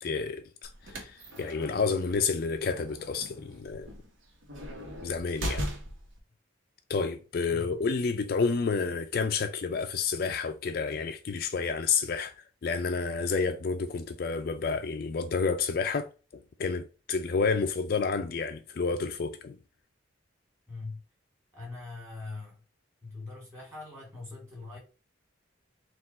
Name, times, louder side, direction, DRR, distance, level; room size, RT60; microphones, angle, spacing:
voice 1, 0.0-3.9 5.0-5.6 6.9-19.6, left 4 dB, 50° left, 0.3 m, -30 dB
sound 1, 0.6-6.2, equal, 80° right, 1.1 m, -39 dB
voice 2, 7.5-7.8 20.7-21.0 21.5-22.6 23.0-24.8, left 3 dB, 15° right, 2.0 m, -42 dB
4.3 x 2.4 x 4.1 m
head